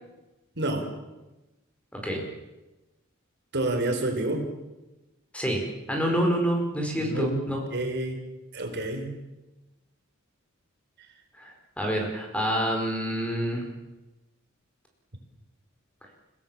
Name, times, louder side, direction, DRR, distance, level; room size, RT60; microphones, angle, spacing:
voice 1, 0.6-0.9 3.5-4.4 7.0-7.3 7.7-8.2 8.5-9.1, right 2 dB, 55° right, 4 dB, 4.1 m, -28 dB
voice 2, 5.9-7.6 11.4-13.7, equal, 5° left, 1 dB, 4.8 m, -27 dB
29.5 x 17.0 x 7.4 m, 1.1 s
head